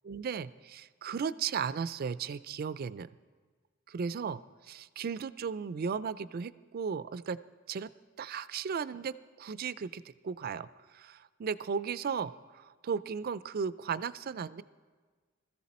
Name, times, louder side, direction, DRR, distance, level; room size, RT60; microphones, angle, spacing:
voice 1, 0.1-3.1 3.9-7.4 7.7-7.9 8.2-10.7 10.9-14.6, right 6 dB, 45° right, 16 dB, 0.4 m, -36 dB
20.5 x 14.0 x 4.2 m, 1.5 s
head